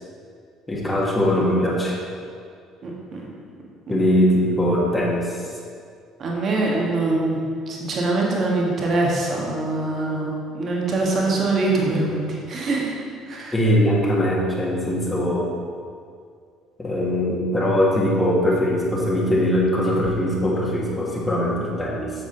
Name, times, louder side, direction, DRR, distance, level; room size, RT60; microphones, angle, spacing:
voice 1, 0.7-2.0 3.9-5.3 13.5-15.5 16.8-22.1, equal, 15° left, -4 dB, 1.9 m, -21 dB
voice 2, 2.8-3.2 3.9-4.0 6.2-7.4 7.7-12.9 13.3-13.5, right 2 dB, 40° right, -2 dB, 1.9 m, -23 dB
8.7 x 7.3 x 4.0 m, 2.2 s
figure-of-eight pair, 55°, 0 cm